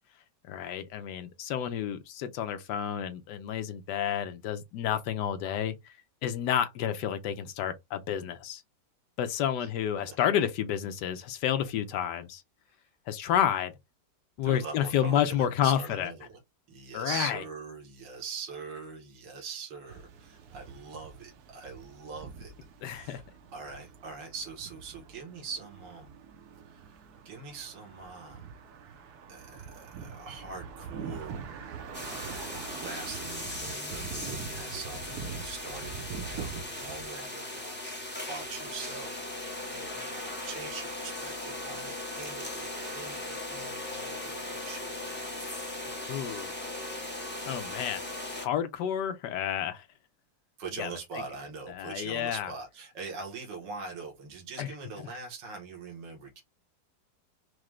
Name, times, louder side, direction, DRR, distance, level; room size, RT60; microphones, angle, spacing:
voice 1, 0.5-6.0 6.2-8.6 9.2-12.4 13.1-13.7 14.4-16.1 16.9-17.4 22.8-23.2 46.1-46.5 47.5-48.0 48.4-49.9 50.8-50.9 51.7-52.5 54.6-55.1, left 9 dB, 75° left, 1.2 m, -30 dB
voice 2, 14.4-16.4 16.7-22.5 22.9-23.2 23.5-26.1 26.7-26.8 27.2-28.4 29.3-31.4 32.0-45.2 50.6-56.4, right 5 dB, 85° right, 1.8 m, -43 dB
sound 1, 19.9-37.2, right 6 dB, 70° right, 1.1 m, -44 dB
sound 2, 31.9-48.5, left 1 dB, 10° left, 0.8 m, -38 dB
4.8 x 2.2 x 3.1 m
omnidirectional pair, 1.9 m